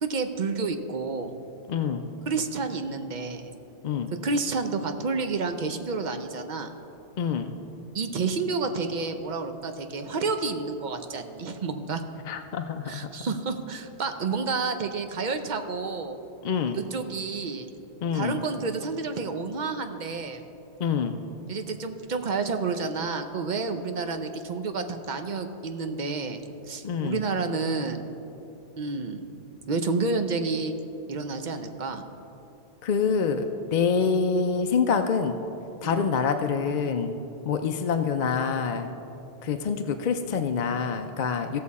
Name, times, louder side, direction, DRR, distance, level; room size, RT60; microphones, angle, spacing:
voice 1, 0.0-1.3 2.3-3.5 4.2-6.7 7.9-12.0 12.8-16.2 16.7-17.7 18.1-20.4 21.5-26.4 26.7-28.0 28.8-29.2 29.7-30.7 31.1-32.0 35.8-36.1, right 4 dB, 50° right, 7 dB, 0.6 m, -30 dB
voice 2, 1.7-2.1 3.8-4.1 7.2-7.5 12.3-13.0 16.4-16.8 18.0-18.4 20.8-21.2 26.8-27.2 32.8-33.5 33.7-35.4 35.8-37.1 37.4-38.9 39.4-41.6, left 6 dB, 60° left, 6 dB, 0.5 m, -26 dB
16.0 x 6.6 x 4.1 m, 2.9 s
omnidirectional pair, 1.2 m